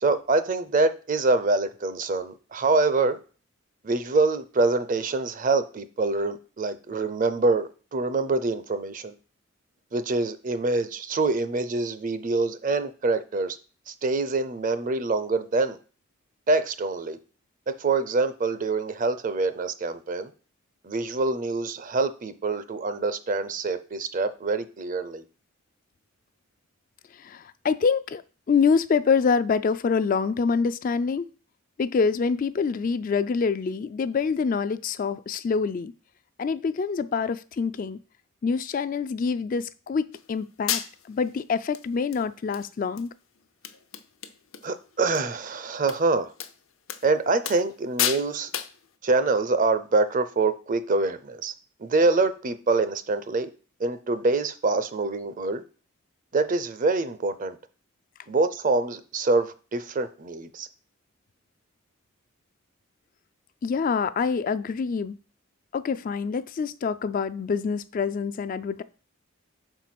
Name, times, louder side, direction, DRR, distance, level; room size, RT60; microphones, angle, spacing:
voice 1, 0.0-3.2 3.8-9.1 9.9-13.6 13.9-15.8 16.5-17.2 17.7-20.3 20.8-25.2 44.6-46.3 47.0-48.5 49.0-51.5 51.8-53.5 53.8-55.6 56.3-57.6 58.3-60.7, right 3 dB, 40° right, 0.6 m, -25 dB
voice 2, 27.1-28.2 28.5-31.2 31.8-35.9 36.4-38.0 38.4-40.8 41.1-43.1 63.6-65.2 65.7-68.8, left 5 dB, 40° left, 0.3 m, -26 dB
sound 1, 40.1-40.2 40.7-41.2 41.7-41.8 42.1-42.6 43.0-43.1 43.4-43.5 43.6-44.7 44.9-45.2 45.9-46.0 46.4-46.5 46.9-47.0 47.4-47.7 48.0-48.3 48.5-48.8, left 10 dB, 75° left, 0.7 m, -30 dB
5.5 x 4.5 x 5.9 m
head